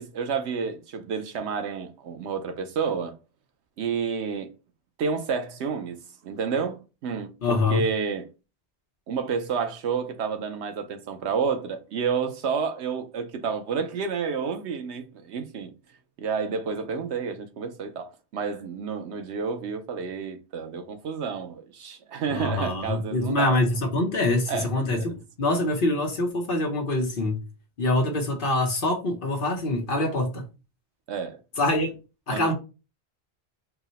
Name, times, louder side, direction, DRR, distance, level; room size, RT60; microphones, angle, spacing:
voice 1, 0.0-3.2 3.8-4.5 5.0-6.0 6.2-8.2 9.1-15.7 16.2-23.7 24.5-25.1 31.1-31.4 32.3-32.5, right 5 dB, 90° right, 1.0 m, -30 dB
voice 2, 7.4-7.8 22.3-27.4 27.8-30.4 31.6-31.9 32.3-32.5, left 2 dB, 55° left, 1.0 m, -25 dB
4.6 x 2.1 x 4.0 m
omnidirectional pair, 1.1 m